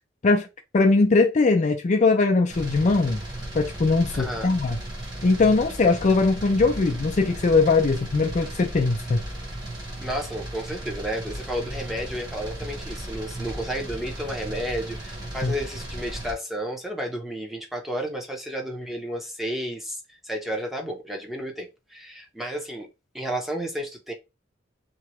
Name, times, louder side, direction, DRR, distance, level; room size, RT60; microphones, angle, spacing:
voice 1, 0.7-3.2 3.5-4.8 5.2-9.2 15.4-15.5, left 3 dB, 40° left, 0.4 m, -20 dB
sound 1, 2.5-16.3, right 1 dB, 20° right, 1.1 m, -36 dB
voice 2, 4.1-4.5 10.0-22.9 23.1-24.1, equal, ahead, 0.7 m, -32 dB
2.9 x 2.3 x 2.9 m
head